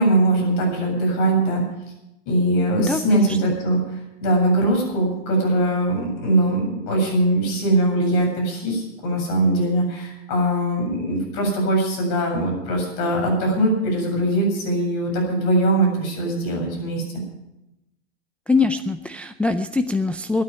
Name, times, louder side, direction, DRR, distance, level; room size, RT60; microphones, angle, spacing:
voice 1, 0.0-1.6 2.3-17.0, right 1 dB, 50° left, 1 dB, 7.5 m, -21 dB
voice 2, 2.8-3.5 18.5-20.4, left 3 dB, 5° left, 6 dB, 0.4 m, -23 dB
12.0 x 9.6 x 9.7 m, 0.92 s
hypercardioid pair, 115°, 32 cm